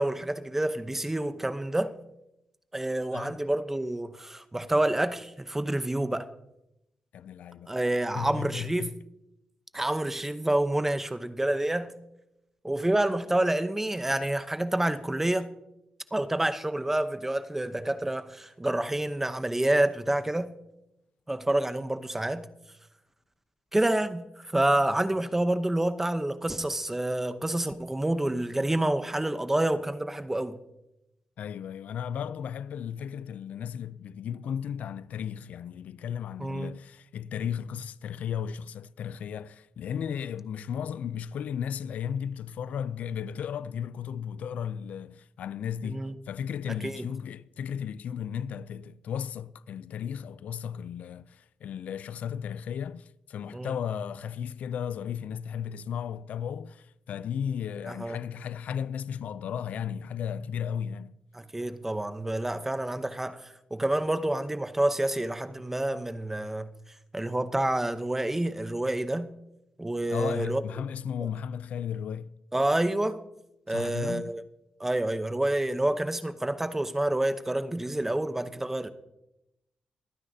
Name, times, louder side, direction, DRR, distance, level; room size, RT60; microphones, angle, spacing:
voice 1, 0.0-1.9 2.7-6.3 7.7-8.9 9.7-11.9 12.6-15.5 16.1-20.5 21.3-22.5 23.7-30.6 36.4-36.7 45.8-46.1 46.8-47.0 53.5-53.7 57.9-58.2 61.3-66.7 67.1-69.3 69.8-70.6 72.5-73.2 73.7-74.4 74.8-78.9, right 1 dB, 15° right, 0.8 m, -28 dB
voice 2, 7.1-7.8 8.1-8.9 31.4-61.1 70.1-72.3 73.7-74.3, left 8 dB, 80° left, 0.3 m, -35 dB
24.5 x 9.7 x 2.7 m
cardioid pair, 95°, 2 cm